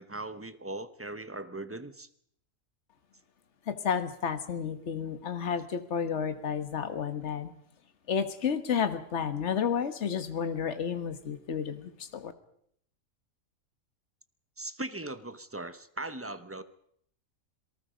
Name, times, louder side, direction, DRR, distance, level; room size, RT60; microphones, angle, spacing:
voice 1, 0.0-2.1 14.6-16.6, right 2 dB, 10° right, 12 dB, 0.8 m, -39 dB
voice 2, 3.7-7.5 8.1-12.3, left 7 dB, 55° left, 10 dB, 1.7 m, -31 dB
27.0 x 19.0 x 5.2 m, 0.69 s
omnidirectional pair, 1.4 m